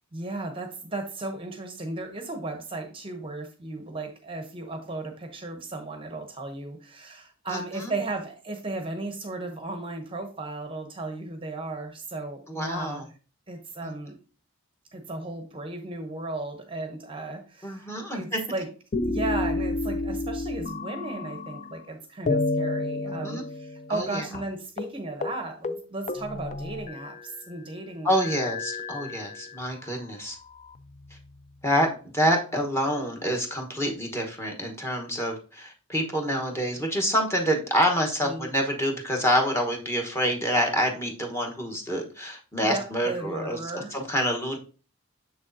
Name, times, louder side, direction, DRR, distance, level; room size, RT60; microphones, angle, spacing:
voice 1, 0.1-13.1 13.5-14.2 14.9-18.7 19.0-28.1 38.2-38.5 42.6-43.9, right 2 dB, 25° right, 5 dB, 0.7 m, -35 dB
voice 2, 7.5-7.9 12.5-13.0 13.8-13.9 17.6-18.4 23.0-23.4 23.9-24.2 28.0-30.4 31.6-31.9 32.1-44.6, equal, 10° left, 2 dB, 1.0 m, -27 dB
sound 1, 18.9-21.9 22.3-24.1 24.3-24.5 24.8-25.0 25.2-25.4 25.6-27.4 28.1-29.7 30.4-31.3, left 2 dB, 35° left, 0.4 m, -31 dB
6.9 x 6.2 x 2.6 m, 0.36 s
head